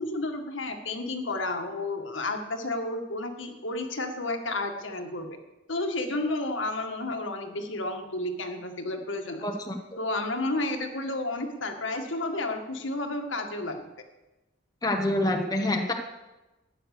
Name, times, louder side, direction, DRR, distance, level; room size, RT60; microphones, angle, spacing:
voice 1, 0.0-5.4 5.7-9.4 10.0-13.8, left 2 dB, 75° left, 4 dB, 1.9 m, -31 dB
voice 2, 9.4-10.0 14.8-15.9, left 1 dB, 20° left, 2 dB, 1.2 m, -27 dB
13.5 x 9.9 x 6.7 m, 1.0 s
head